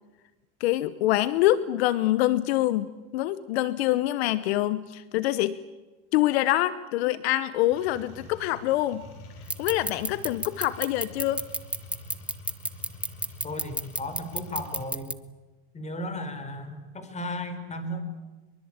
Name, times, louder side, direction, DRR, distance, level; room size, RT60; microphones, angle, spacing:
voice 1, 0.6-5.6 6.1-9.1 9.6-11.5, left 15 dB, 75° left, 16 dB, 1.0 m, -25 dB
sound 1, 7.7-14.8, left 2 dB, 45° left, 7.3 m, -46 dB
sound 2, 9.5-15.1, right 1 dB, 5° right, 0.8 m, -29 dB
voice 2, 13.4-15.1 15.7-18.0, left 1 dB, 20° left, 9 dB, 4.5 m, -35 dB
23.5 x 23.0 x 8.8 m, 1.2 s
supercardioid pair, 110°, 32 cm